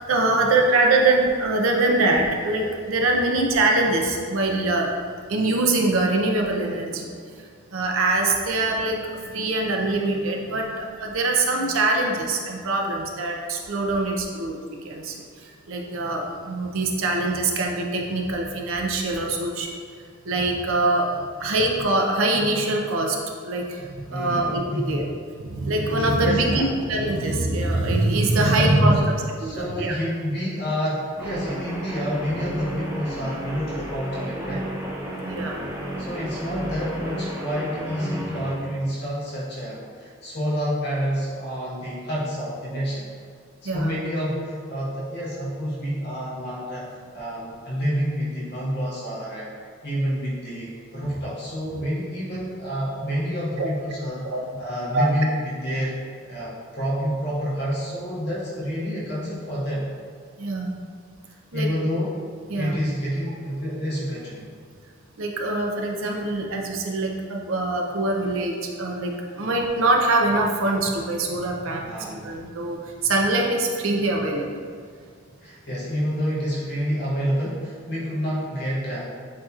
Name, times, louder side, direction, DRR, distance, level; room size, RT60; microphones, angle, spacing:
voice 1, 0.1-4.9 5.3-7.1 7.4-7.5 7.7-19.8 20.2-21.1 21.4-23.2 23.4-25.0 25.4-29.1 29.4-29.9 35.2-35.7 43.6-44.0 53.6-53.7 54.3-54.4 54.9-55.1 60.4-60.8 61.5-61.7 62.5-62.8 65.2-74.6, right 2 dB, 75° right, 1 dB, 0.6 m, -23 dB
voice 2, 24.1-25.1 26.2-26.7 28.3-29.0 29.4-34.7 36.0-43.1 43.6-49.5 49.8-54.2 54.6-56.0 56.2-59.8 61.5-62.2 62.5-64.5 71.8-72.4 75.4-79.0, equal, 50° left, -7 dB, 1.3 m, -28 dB
Guitar, 31.2-38.6, right 1 dB, 10° right, 0.5 m, -33 dB
7.4 x 2.8 x 2.4 m, 2.1 s
head